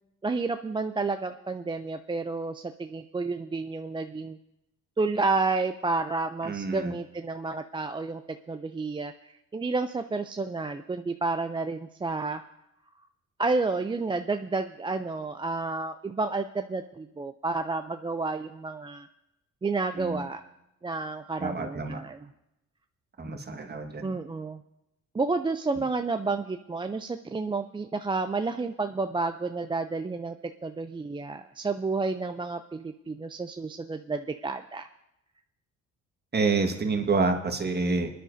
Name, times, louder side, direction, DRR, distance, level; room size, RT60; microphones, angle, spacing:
voice 1, 0.2-4.4 5.0-8.2 8.5-9.1 9.5-12.4 13.4-19.1 19.6-20.4 20.8-22.2 24.0-24.6 25.1-34.9, right 3 dB, 15° right, 7 dB, 0.4 m, -30 dB
voice 2, 6.4-6.9 20.0-20.2 21.4-22.0 23.2-24.1 36.3-38.1, right 4 dB, 35° right, 4 dB, 1.6 m, -28 dB
25.0 x 10.0 x 2.7 m, 0.90 s
cardioid pair, 90°, 30 cm